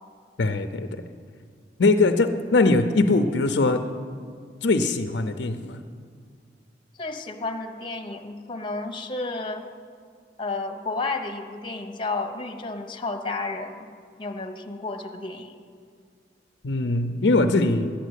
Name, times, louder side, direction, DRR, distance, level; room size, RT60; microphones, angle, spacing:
voice 1, 0.4-1.0 1.8-3.8 4.6-5.8 16.6-17.9, left 3 dB, 70° left, 8 dB, 0.6 m, -21 dB
voice 2, 7.0-9.7 10.4-13.9 14.2-15.5, left 3 dB, 30° left, 4 dB, 1.0 m, -32 dB
12.0 x 9.1 x 8.2 m, 2.1 s
head